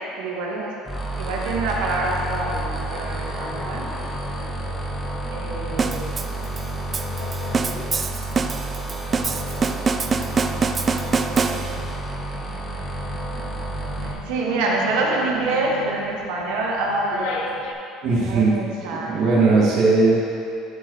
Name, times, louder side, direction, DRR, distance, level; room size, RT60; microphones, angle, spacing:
voice 1, 0.2-0.7 1.2-3.8 5.3-6.2 14.0-17.4 18.2-19.2, right 2 dB, 80° right, -2 dB, 1.6 m, -26 dB
sound 1, 0.9-14.1, right 1 dB, 5° left, 1.0 m, -30 dB
sound 2, 1.2-17.7, left 4 dB, 80° left, 0.9 m, -39 dB
sound 3, 5.8-12.0, right 5 dB, 25° right, 0.3 m, -25 dB
voice 2, 18.0-18.5 19.0-20.1, right 3 dB, 50° right, -7 dB, 1.9 m, -18 dB
11.0 x 4.8 x 4.8 m, 2.7 s
cardioid pair, 150°, 0 cm